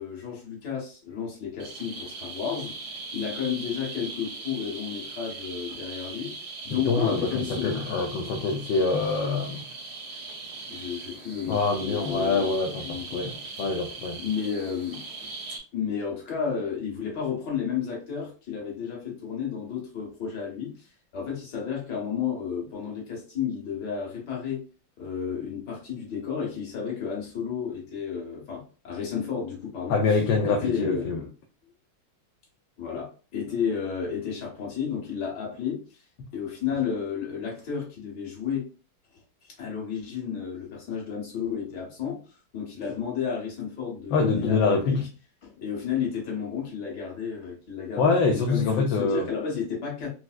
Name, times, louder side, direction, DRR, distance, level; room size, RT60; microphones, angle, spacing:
voice 1, 0.0-2.8 3.1-6.4 6.6-7.8 10.7-13.5 14.2-15.3 15.7-24.7 25.0-30.0 30.5-31.3 32.8-36.0 36.3-38.7 39.4-42.2 42.5-45.1 45.4-50.1, left 7 dB, 60° left, 1.9 m, -32 dB
sound 1, 1.6-15.6, right 3 dB, 80° right, 1.8 m, -39 dB
voice 2, 6.7-9.6 11.5-14.2 29.9-31.2 44.1-45.0 48.0-49.3, left 4 dB, 75° left, 1.2 m, -25 dB
4.6 x 2.0 x 2.4 m
omnidirectional pair, 2.2 m